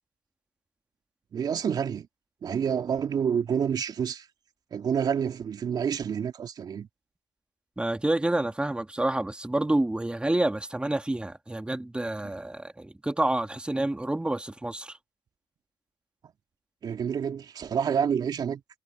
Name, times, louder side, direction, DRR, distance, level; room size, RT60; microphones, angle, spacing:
voice 1, 1.3-2.1 2.4-4.3 4.7-6.9 12.2-12.3 16.8-18.6, right 7 dB, 55° right, 2.5 m, -28 dB
voice 2, 7.8-15.0, right 1 dB, 10° right, 2.7 m, -28 dB
supercardioid pair, 60°, 8 cm